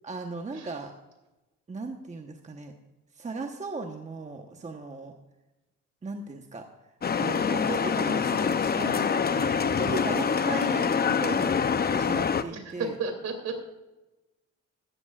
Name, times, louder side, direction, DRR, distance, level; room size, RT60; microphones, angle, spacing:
voice 1, 0.0-0.9 1.7-2.7 3.2-5.1 6.0-6.6 7.1-9.6 10.0-13.0, right 3 dB, 25° right, 4 dB, 1.1 m, -37 dB
sound 1, 7.0-12.4, left 6 dB, 30° left, 0.6 m, -25 dB
voice 2, 12.5-13.6, right 4 dB, 60° right, 5 dB, 3.0 m, -32 dB
15.0 x 13.0 x 2.4 m, 1.0 s
cardioid pair, 90°, 30 cm